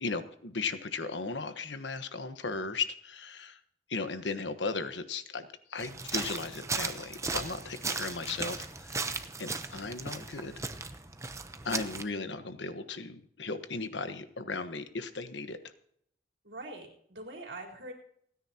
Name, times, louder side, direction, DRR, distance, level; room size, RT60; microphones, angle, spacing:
voice 1, 0.0-3.6 3.9-9.1 9.4-10.6 11.6-15.6, left 4 dB, 80° left, 9 dB, 1.2 m, -36 dB
sound 1, 5.8-12.0, right 4 dB, 15° right, 0.7 m, -37 dB
voice 2, 16.4-17.9, right 2 dB, 80° right, 0 dB, 4.0 m, -43 dB
29.0 x 9.9 x 2.9 m, 0.69 s
head